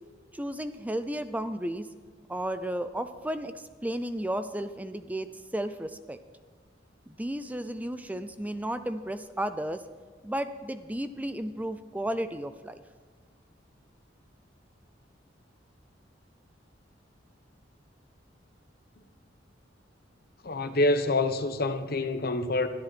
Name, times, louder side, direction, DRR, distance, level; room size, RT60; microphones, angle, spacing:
voice 1, 0.3-1.9 2.3-5.3 5.5-6.2 7.1-9.8 10.2-12.8, right 1 dB, 10° right, 0.5 m, -33 dB
voice 2, 20.4-22.7, left 2 dB, 55° left, 1.2 m, -26 dB
22.0 x 13.5 x 4.3 m
head